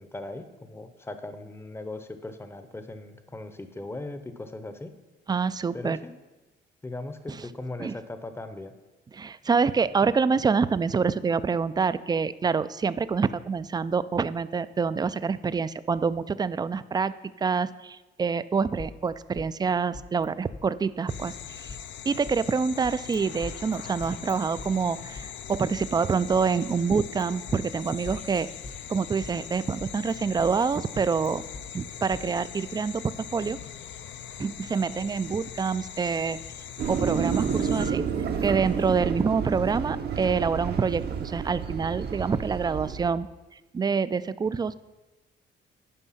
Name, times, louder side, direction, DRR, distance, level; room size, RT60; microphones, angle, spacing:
voice 1, 0.0-4.9 5.7-6.1 6.8-8.7, left 2 dB, 10° left, 10 dB, 0.7 m, -38 dB
voice 2, 5.3-6.0 7.8-7.9 9.1-17.1 17.4-21.8 22.1-28.5 28.9-31.4 31.7-33.6 34.4-36.4 36.9-38.1 38.4-43.3 43.7-44.8, right 5 dB, 20° right, 15 dB, 0.3 m, -26 dB
sound 1, 18.8-20.3 20.5-20.6 21.1-22.4 22.8-23.2 23.4-25.3 25.7-27.2 27.5-27.6 28.1-29.4 29.8-31.6 32.1-32.2, left 3 dB, 35° left, 0.9 m, -44 dB
sound 2, 21.1-37.9, left 9 dB, 65° left, 0.6 m, -41 dB
sound 3, 36.8-43.1, right 7 dB, 55° right, 0.8 m, -30 dB
10.0 x 5.3 x 5.7 m, 1.1 s
cardioid pair, 90°, 20 cm